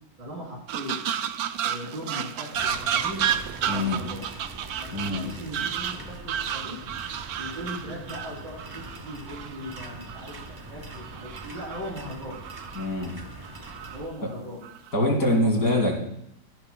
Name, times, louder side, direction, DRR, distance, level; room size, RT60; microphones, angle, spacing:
voice 1, 0.2-0.9 1.6-3.3 3.6-4.3 4.8-6.8 7.4-12.4 13.9-14.6 15.0-15.8, equal, 85° right, -6 dB, 4.0 m, -38 dB
sound 1, 0.7-10.4 10.9-12.0 12.3-12.9 13.4-14.0 14.6-14.9, right 9 dB, 70° right, 1.0 m, -32 dB
sound 2, 2.5-14.1, right 2 dB, 35° right, 0.4 m, -43 dB
voice 2, 3.7-4.0 4.9-5.2 12.7-13.1 14.9-16.1, left 1 dB, 55° left, 1 dB, 2.9 m, -24 dB
14.0 x 11.5 x 2.3 m, 0.75 s
omnidirectional pair, 2.0 m